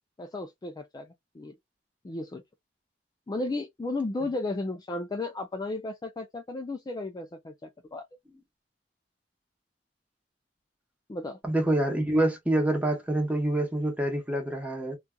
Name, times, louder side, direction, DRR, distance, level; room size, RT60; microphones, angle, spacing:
voice 1, 0.2-1.6 2.0-2.4 3.3-8.0 11.1-11.4, left 2 dB, 25° left, 0.3 m, -34 dB
voice 2, 11.4-15.0, right 1 dB, 10° right, 0.8 m, -26 dB
2.6 x 2.3 x 2.2 m
head